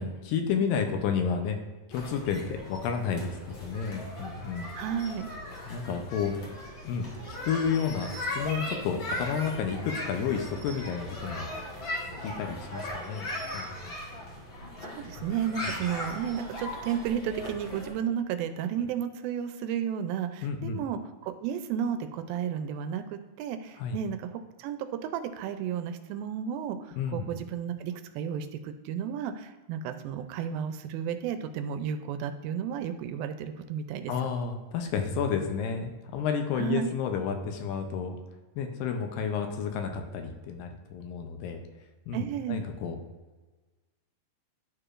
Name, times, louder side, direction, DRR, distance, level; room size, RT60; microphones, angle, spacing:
voice 1, 0.0-1.6 1.9-4.8 5.7-6.4 6.8-11.5 12.2-13.3 13.5-14.0 15.6-15.8 20.4-20.8 23.8-24.0 26.9-27.3 34.1-38.2 38.6-41.6 42.1-43.0, left 6 dB, 80° left, 5 dB, 2.3 m, -31 dB
sound 1, 1.9-17.9, left 1 dB, 50° left, 1.6 m, -38 dB
voice 2, 4.8-5.3 14.8-34.1 36.6-36.9 42.1-42.6, right 8 dB, 85° right, 9 dB, 2.3 m, -33 dB
11.0 x 4.8 x 2.5 m, 1.3 s
omnidirectional pair, 4.1 m